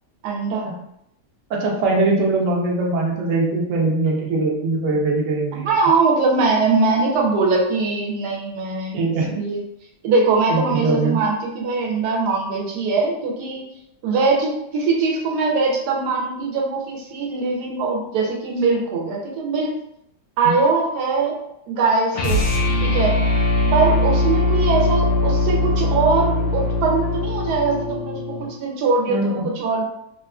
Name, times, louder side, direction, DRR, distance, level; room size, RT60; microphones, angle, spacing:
voice 1, 0.2-0.7 5.6-9.6 10.0-13.7 14.0-19.7 20.4-21.3 21.7-22.5 22.8-23.2 23.7-29.8, right 4 dB, 80° right, -2 dB, 1.1 m, -21 dB
voice 2, 1.5-5.7 8.9-9.3 10.5-11.2 29.1-29.5, right 3 dB, 65° right, -1 dB, 0.8 m, -21 dB
sound 1, 22.1-28.5, left 2 dB, 70° left, 0.9 m, -20 dB
2.8 x 2.4 x 2.2 m, 0.78 s
omnidirectional pair, 1.8 m